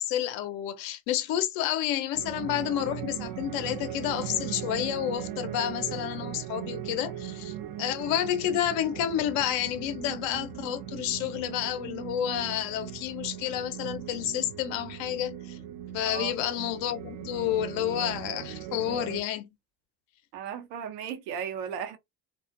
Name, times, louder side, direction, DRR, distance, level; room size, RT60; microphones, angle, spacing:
voice 1, 0.0-15.6 15.9-19.5, left 11 dB, 65° left, 0.7 m, -30 dB
sound 1, 2.1-19.2, right 11 dB, 50° right, 0.5 m, -39 dB
voice 2, 20.3-22.0, right 8 dB, 75° right, 0.8 m, -35 dB
2.4 x 2.4 x 2.5 m
hypercardioid pair, 65°, 49 cm